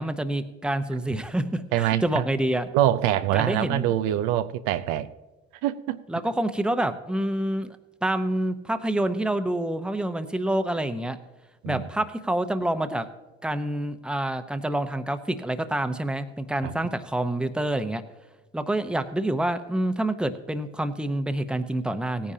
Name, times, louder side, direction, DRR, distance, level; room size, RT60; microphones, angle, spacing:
voice 1, 0.0-2.7 3.3-3.9 6.1-11.2 11.7-13.1 13.4-18.0 18.5-22.3, right 1 dB, 5° right, 9 dB, 0.9 m, -27 dB
voice 2, 1.7-2.2 2.7-5.1 5.6-6.0 11.6-11.9 16.6-16.7, right 12 dB, 75° right, 12 dB, 0.6 m, -24 dB
17.0 x 10.0 x 2.8 m, 1.1 s
hypercardioid pair, 75°, 32 cm